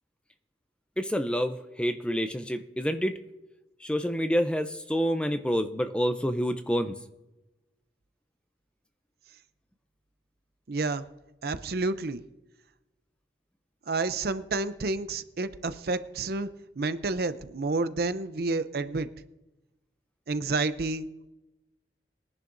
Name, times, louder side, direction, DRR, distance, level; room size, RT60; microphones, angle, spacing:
voice 1, 1.0-3.2 3.8-7.0, equal, 5° left, 9 dB, 0.5 m, -28 dB
voice 2, 10.7-11.0 11.4-12.2 13.9-16.5 16.8-19.1 20.3-21.1, right 3 dB, 55° right, 12 dB, 0.6 m, -29 dB
21.5 x 10.5 x 2.6 m, 0.98 s
head